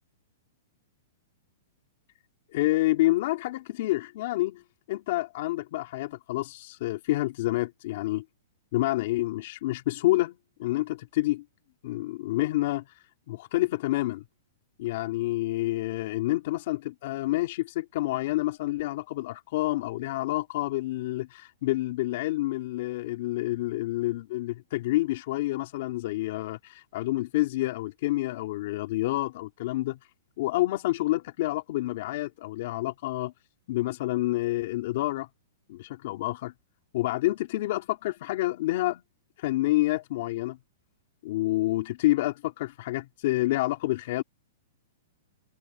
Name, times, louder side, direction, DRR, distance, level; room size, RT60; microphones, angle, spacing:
voice 1, 2.5-4.6 4.9-8.2 8.7-11.4 11.8-12.9 13.3-14.2 14.8-30.0 30.4-33.3 33.7-35.3 35.7-36.5 36.9-39.0 39.4-40.6 41.2-44.2, left 17 dB, 40° left, 3.2 m, -28 dB
hypercardioid pair, 175°, 0 cm